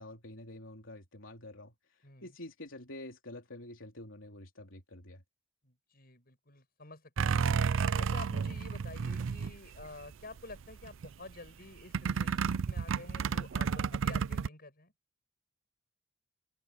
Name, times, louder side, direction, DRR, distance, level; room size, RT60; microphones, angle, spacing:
voice 1, 0.0-5.2, left 1 dB, 75° left, 3.6 m, -48 dB
voice 2, 2.0-2.3 5.6-7.6 8.0-14.9, left 3 dB, 50° left, 7.6 m, -50 dB
sound 1, 7.2-10.1 10.5-11.1 11.9-14.5, right 6 dB, 75° right, 0.4 m, -31 dB
head